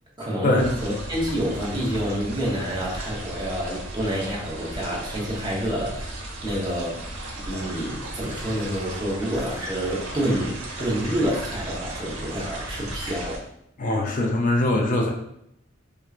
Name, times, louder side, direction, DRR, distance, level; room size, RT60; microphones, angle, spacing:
voice 1, 0.2-6.1 6.4-7.2 7.4-13.4, equal, 20° right, -4 dB, 0.9 m, -28 dB
sound 1, 0.6-13.4, right 1 dB, 90° right, 0.9 m, -35 dB
voice 2, 13.8-15.1, left 2 dB, 40° left, 0 dB, 0.4 m, -22 dB
4.3 x 2.3 x 2.4 m, 0.76 s
head